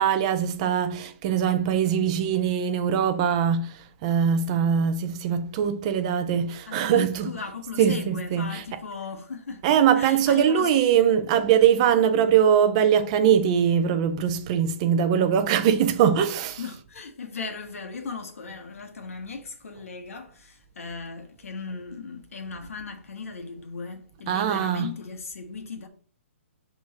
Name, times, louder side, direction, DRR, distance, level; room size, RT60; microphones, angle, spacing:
voice 1, 0.0-7.4 7.8-8.8 9.6-16.7 24.3-25.0, right 8 dB, 25° right, 0.5 m, -22 dB
voice 2, 6.7-9.7 9.9-10.7 16.6-25.9, left 4 dB, 80° left, 1.5 m, -37 dB
6.3 x 3.6 x 4.3 m
hypercardioid pair, 160°, 8 cm